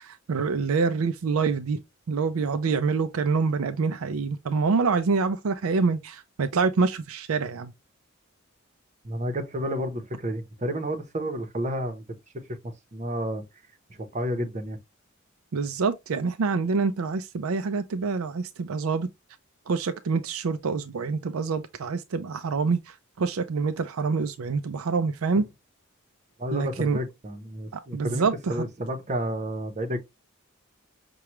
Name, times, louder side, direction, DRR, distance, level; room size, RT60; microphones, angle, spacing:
voice 1, 0.0-1.8 2.1-7.7 15.5-19.1 19.7-22.8 23.2-25.4 26.5-27.0 27.9-28.5, right 4 dB, 75° right, 0.4 m, -26 dB
voice 2, 9.0-12.0 12.6-13.4 13.9-14.8 26.4-30.0, equal, 35° right, 0.8 m, -31 dB
5.8 x 2.3 x 3.0 m
head